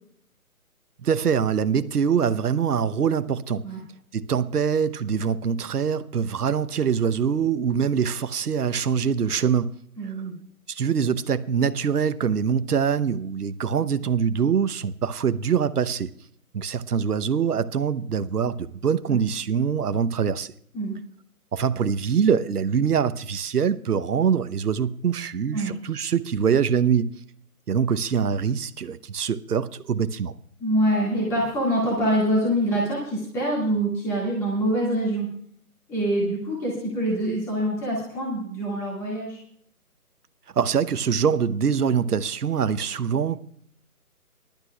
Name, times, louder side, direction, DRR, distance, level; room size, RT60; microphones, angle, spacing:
voice 1, 1.0-3.6 4.1-9.7 10.0-10.1 10.7-16.1 16.5-20.5 21.5-27.1 27.7-30.3 40.6-43.4, right 7 dB, 80° right, 0.9 m, -24 dB
voice 2, 10.0-10.3 19.1-19.2 20.7-21.0 25.5-25.7 30.6-35.3 35.9-39.4, right 1 dB, 5° left, 2.0 m, -25 dB
22.0 x 12.0 x 2.3 m
hypercardioid pair, 165°, 45 cm